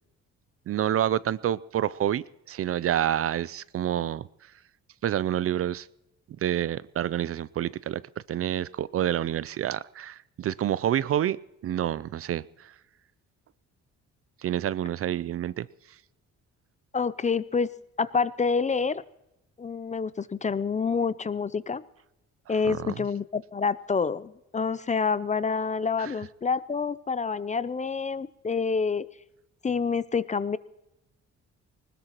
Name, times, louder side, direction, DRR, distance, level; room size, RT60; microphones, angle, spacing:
voice 1, 0.7-4.3 5.0-5.9 6.4-8.0 8.3-11.4 11.6-12.7 14.4-15.7 22.6-22.9 26.0-26.1, right 11 dB, 50° right, 19 dB, 0.5 m, -28 dB
voice 2, 16.9-17.7 18.0-19.0 19.6-21.8 22.5-29.1 29.6-30.6, left 5 dB, 25° left, 17 dB, 0.5 m, -27 dB
20.5 x 19.5 x 3.0 m, 0.91 s
cardioid pair, 90°, 30 cm